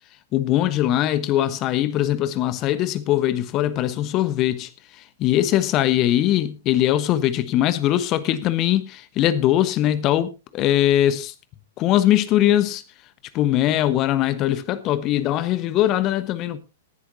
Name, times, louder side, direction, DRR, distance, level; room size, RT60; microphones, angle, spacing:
voice 1, 0.3-4.7 5.2-11.3 11.8-12.8 13.3-16.6, left 13 dB, 35° left, 1.2 m, -21 dB
18.5 x 10.5 x 2.8 m
figure-of-eight pair, 105°, 0 cm